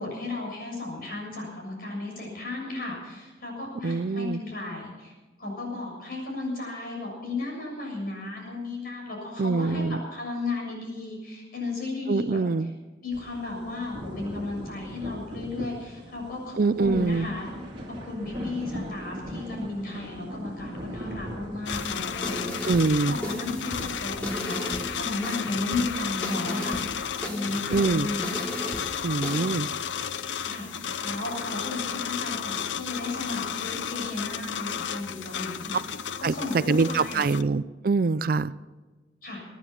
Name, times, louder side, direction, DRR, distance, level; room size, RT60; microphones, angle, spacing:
voice 1, 0.0-5.1 5.4-12.4 13.0-17.5 17.9-22.4 23.1-26.8 27.2-28.2 30.4-37.3 39.2-39.5, left 2 dB, 50° left, -1 dB, 6.9 m, -34 dB
voice 2, 3.8-4.4 9.4-10.0 12.1-12.7 16.6-17.3 22.6-23.2 27.7-28.1 29.0-29.7 36.2-38.5, right 4 dB, 50° right, 16 dB, 0.4 m, -24 dB
sound 1, 13.1-24.9, equal, 30° right, 2.7 m, -40 dB
sound 2, 21.7-37.4, left 8 dB, 85° left, 0.7 m, -33 dB
sound 3, 21.7-29.7, equal, 10° left, 3.3 m, -37 dB
23.5 x 10.0 x 5.9 m, 1.3 s
head